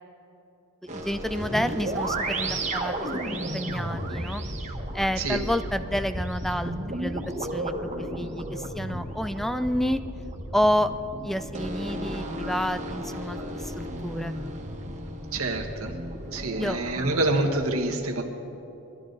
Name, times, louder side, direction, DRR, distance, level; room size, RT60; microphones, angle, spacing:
voice 1, 0.9-4.4 4.9-7.2 7.5-7.9 8.2-10.0 10.5-10.9 11.2-14.3 16.6-17.3, equal, ahead, 11 dB, 0.4 m, -29 dB
sound 1, 0.9-17.4, right 1 dB, 35° right, 1.5 m, -33 dB
voice 2, 15.3-15.9 16.3-18.2, right 2 dB, 70° right, 2 dB, 1.6 m, -26 dB
21.0 x 13.0 x 4.0 m, 2.9 s
head